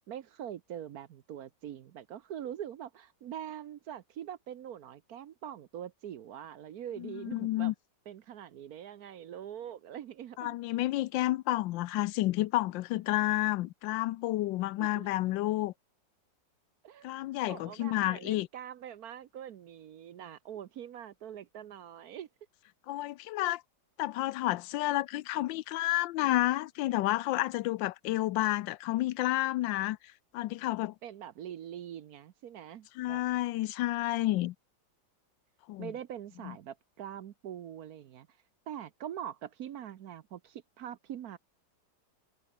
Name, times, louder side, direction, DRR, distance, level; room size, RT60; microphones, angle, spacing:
voice 1, 0.1-7.7 8.1-10.6 14.8-15.1 16.8-17.1 17.5-22.3 31.0-33.2 35.8-38.3 38.7-41.4, right 10 dB, 65° right, 1.2 m, -43 dB
voice 2, 7.0-7.7 10.4-15.7 17.0-18.5 22.9-23.6 24.0-30.9 33.0-34.5 35.7-35.9 36.4-36.6, left 16 dB, 85° left, 1.3 m, -30 dB
omnidirectional pair, 2.0 m